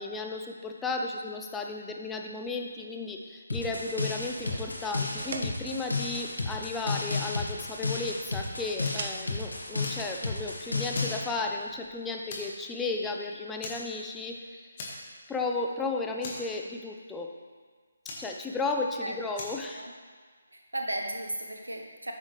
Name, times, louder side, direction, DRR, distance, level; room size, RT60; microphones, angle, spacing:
voice 1, 0.0-14.7 15.3-17.3 18.2-19.9, left 3 dB, 10° left, 2 dB, 0.6 m, -34 dB
sound 1, 3.5-11.2, left 3 dB, 80° left, 1.4 m, -32 dB
sound 2, 4.3-12.4, right 4 dB, 50° right, 0.6 m, -46 dB
Fire, 8.8-9.1 9.5-10.5 10.9-11.9 12.3-12.7 13.0-13.1 13.6-14.3 14.8-15.3 15.6-15.7 16.2-17.0 18.1-18.9 19.3-19.7, left 2 dB, 35° left, 1.7 m, -42 dB
voice 2, 20.5-22.1, right 1 dB, 85° right, 2 dB, 1.1 m, -35 dB
9.3 x 6.3 x 3.2 m, 1.6 s
figure-of-eight pair, 150°, 0 cm